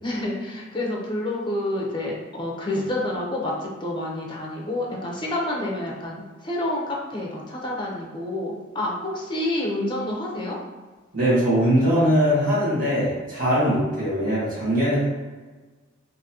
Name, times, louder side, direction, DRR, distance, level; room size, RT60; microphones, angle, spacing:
voice 1, 0.0-10.6, left 1 dB, 25° left, -2 dB, 0.6 m, -28 dB
voice 2, 11.1-15.1, equal, 45° right, -9 dB, 1.3 m, -21 dB
3.8 x 2.6 x 2.8 m, 1.3 s
head